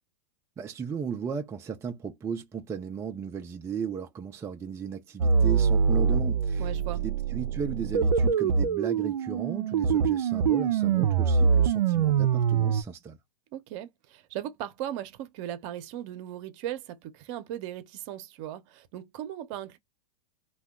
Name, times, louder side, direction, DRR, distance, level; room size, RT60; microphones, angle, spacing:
voice 1, 0.6-13.2, right 6 dB, 15° right, 0.3 m, -35 dB
sound 1, 5.2-12.8, right 6 dB, 90° right, 0.4 m, -24 dB
voice 2, 6.6-7.0 13.5-19.8, right 11 dB, 50° right, 0.7 m, -38 dB
2.7 x 2.2 x 3.5 m
hypercardioid pair, 120°, 20 cm